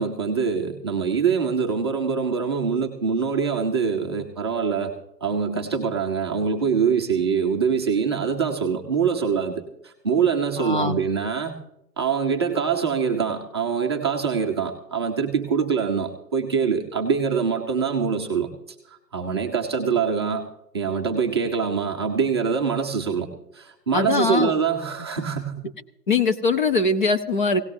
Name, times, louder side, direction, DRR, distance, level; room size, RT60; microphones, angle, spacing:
voice 1, 0.0-4.9 5.2-11.5 12.0-18.5 19.1-20.5 20.7-23.3 23.5-25.5, right 6 dB, 15° right, 0 dB, 0.7 m, -24 dB
voice 2, 10.6-11.0 23.9-24.5 26.1-27.6, left 3 dB, 30° left, 7 dB, 0.9 m, -21 dB
19.5 x 17.5 x 2.7 m, 0.78 s
hypercardioid pair, 155°, 48 cm